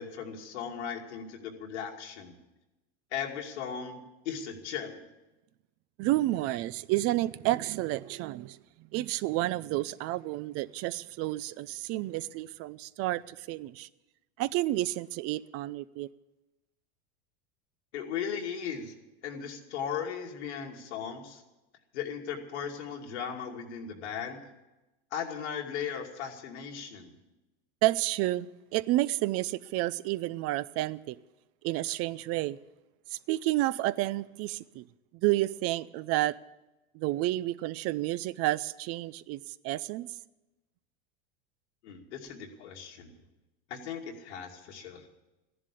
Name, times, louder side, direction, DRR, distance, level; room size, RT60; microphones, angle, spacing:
voice 1, 0.0-2.3 3.1-5.0 17.9-18.9 19.2-21.4 21.9-24.4 25.1-27.1 41.8-43.1 43.7-45.1, left 7 dB, 90° left, 2.6 m, -37 dB
voice 2, 6.0-8.6 8.9-13.9 14.4-16.1 27.8-28.5 28.7-31.1 31.6-32.6 33.1-34.8 35.2-36.4 36.9-40.1, right 17 dB, 45° right, 0.5 m, -30 dB
14.0 x 11.0 x 8.4 m
supercardioid pair, 125°, 33 cm